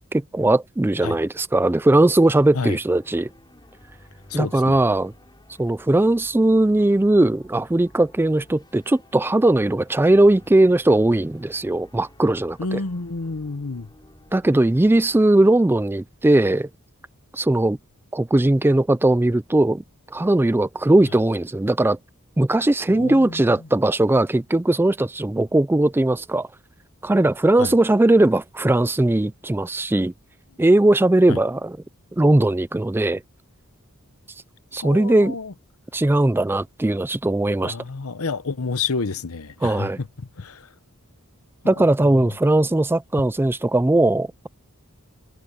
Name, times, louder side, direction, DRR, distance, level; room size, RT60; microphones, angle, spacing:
voice 1, 0.1-3.3 4.3-5.1 5.6-12.8 14.3-16.7 17.3-17.8 18.1-19.8 20.1-22.0 22.4-26.5 27.0-30.1 30.6-31.8 32.1-33.2 34.7-35.3 35.9-37.8 39.6-40.0 41.7-44.5, right 1 dB, 10° right, 0.3 m, -19 dB
sound 1, 2.1-15.3, left 1 dB, 20° left, 4.5 m, -52 dB
voice 2, 4.3-4.8 12.6-13.9 22.9-23.5 27.6-27.7 31.3-31.4 34.8-35.5 37.6-40.7 41.6-42.4, left 4 dB, 75° left, 0.9 m, -30 dB
head